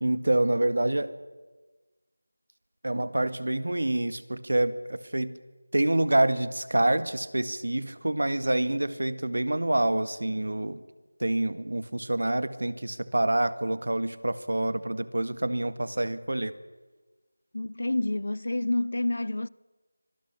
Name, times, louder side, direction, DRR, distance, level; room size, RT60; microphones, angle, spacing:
voice 1, 0.0-1.1 2.8-5.3 5.7-10.8 11.2-16.5, right 1 dB, 75° right, 1.8 m, -27 dB
voice 2, 17.5-19.5, left 2 dB, 60° left, 0.7 m, -28 dB
25.0 x 19.0 x 9.9 m
figure-of-eight pair, 175°, 0 cm